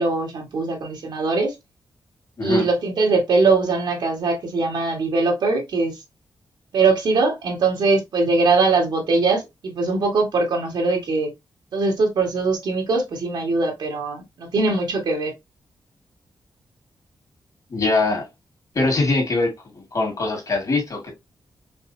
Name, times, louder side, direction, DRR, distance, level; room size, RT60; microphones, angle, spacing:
voice 1, 0.0-1.5 2.4-5.9 6.7-11.3 11.7-15.3, right 3 dB, 75° right, 1.9 m, -21 dB
voice 2, 17.7-18.3 18.7-21.1, left 3 dB, 50° left, 2.4 m, -22 dB
5.3 x 2.5 x 2.8 m
cardioid pair, 90°, 8 cm